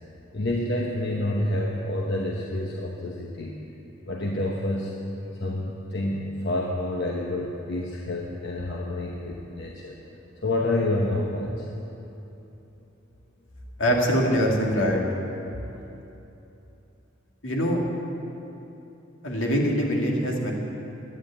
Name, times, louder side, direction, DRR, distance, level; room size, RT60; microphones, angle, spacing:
voice 1, 0.3-3.6 4.1-5.0 5.4-9.9 10.4-11.7, left 1 dB, 60° left, -2 dB, 1.1 m, -28 dB
voice 2, 13.8-15.0 17.4-17.8 19.2-20.5, equal, 75° left, -1 dB, 2.1 m, -23 dB
11.5 x 9.7 x 8.6 m, 3.0 s
head